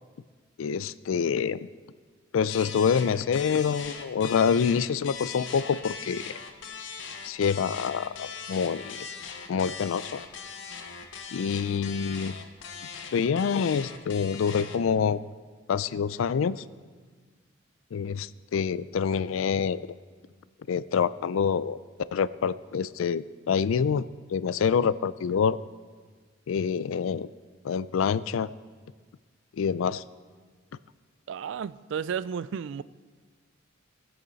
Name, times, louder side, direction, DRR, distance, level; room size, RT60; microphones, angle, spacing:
voice 1, 0.6-1.7 2.3-6.3 7.2-9.1 9.5-10.2 11.3-12.3 13.1-15.3 15.7-16.6 17.9-19.8 20.7-21.8 22.1-24.1 24.3-25.6 26.5-27.3 27.6-28.5 29.6-30.0, left 6 dB, 80° left, 17 dB, 0.4 m, -26 dB
sound 1, 2.5-14.9, left 6 dB, 65° left, 0.9 m, -40 dB
voice 2, 31.3-32.8, right 7 dB, 65° right, 17 dB, 0.3 m, -33 dB
19.0 x 8.0 x 4.0 m, 1.5 s
head